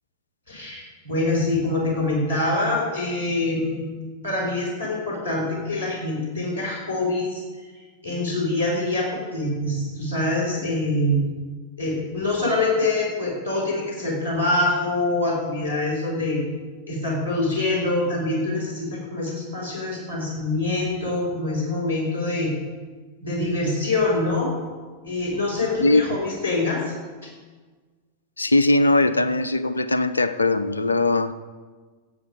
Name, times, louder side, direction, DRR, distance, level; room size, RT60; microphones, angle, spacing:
voice 1, 0.5-3.9 4.2-7.7 8.0-11.2 11.8-16.4 16.9-22.5 23.2-24.5 25.0-26.9, left 2 dB, 90° right, -4 dB, 4.6 m, -25 dB
voice 2, 28.4-31.3, left 2 dB, 80° left, 14 dB, 0.5 m, -20 dB
15.0 x 8.3 x 5.1 m, 1.4 s
figure-of-eight pair, 90°, 0 cm